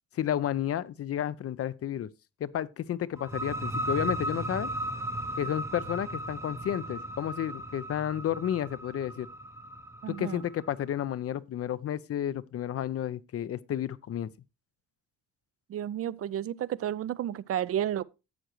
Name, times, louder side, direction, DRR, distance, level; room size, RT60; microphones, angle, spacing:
voice 1, 0.1-2.1 2.4-4.7 5.4-9.3 10.1-14.3, left 10 dB, 50° left, 0.6 m, -31 dB
sound 1, 3.2-10.7, right 1 dB, 10° right, 0.7 m, -36 dB
voice 2, 10.0-10.4 15.7-18.0, right 11 dB, 50° right, 0.5 m, -32 dB
11.5 x 7.9 x 3.0 m
cardioid pair, 90°, 30 cm